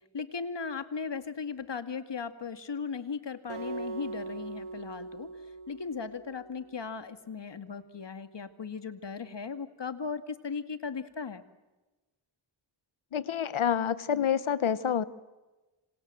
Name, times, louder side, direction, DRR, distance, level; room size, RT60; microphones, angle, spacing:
voice 1, 0.1-5.3 5.7-11.4, left 5 dB, 60° left, 10 dB, 2.2 m, -37 dB
Acoustic guitar, 3.5-6.7, right 3 dB, 80° right, 5.0 m, -40 dB
voice 2, 13.1-15.0, left 8 dB, 85° left, 16 dB, 1.2 m, -28 dB
28.0 x 26.5 x 7.7 m, 1.1 s
wide cardioid pair, 75°, 47 cm